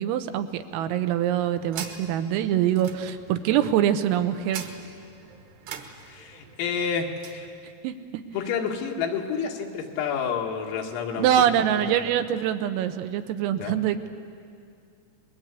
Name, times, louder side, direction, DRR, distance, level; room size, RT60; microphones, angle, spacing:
voice 1, 0.0-4.7 7.8-7.9 11.2-14.1, right 10 dB, 85° right, 9 dB, 3.7 m, -24 dB
sound 1, 1.0-7.5, right 7 dB, 65° right, 3.0 m, -43 dB
voice 2, 6.1-7.5 8.3-12.0 13.6-13.8, left 6 dB, 85° left, 1 dB, 4.7 m, -30 dB
28.5 x 21.5 x 8.4 m, 2.3 s
omnidirectional pair, 5.9 m